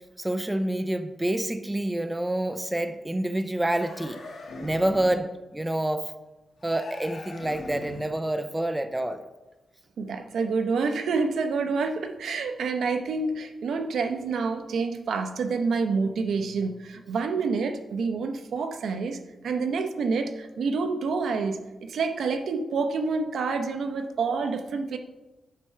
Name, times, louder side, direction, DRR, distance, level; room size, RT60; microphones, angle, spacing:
voice 1, 0.2-4.2 4.6-6.1 6.6-9.2, right 1 dB, 10° right, 9 dB, 0.5 m, -27 dB
sound 1, 3.6-5.3 6.6-8.2, left 2 dB, 75° left, 2.0 m, -41 dB
voice 2, 10.0-19.2 19.4-25.0, right 4 dB, 75° right, 7 dB, 0.8 m, -28 dB
9.6 x 4.5 x 5.8 m, 1.1 s
wide cardioid pair, 135°, 0 cm